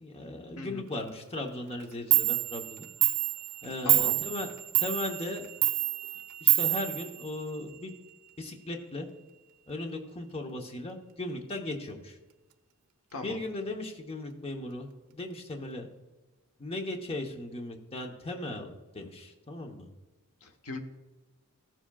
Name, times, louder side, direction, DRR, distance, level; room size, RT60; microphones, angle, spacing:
voice 1, 0.0-2.9 3.6-4.5 4.8-5.5 6.4-7.9 8.4-9.1 9.7-12.2 13.2-15.9 16.6-19.9, left 1 dB, 25° left, 3 dB, 0.9 m, -37 dB
voice 2, 0.6-0.9 3.8-4.2 13.1-13.4 20.4-20.8, left 2 dB, 70° left, 4 dB, 1.0 m, -39 dB
Clock, 1.8-1.9 2.1-7.8, right 18 dB, 70° right, 0.5 m, -28 dB
15.0 x 7.3 x 2.3 m, 1.1 s
head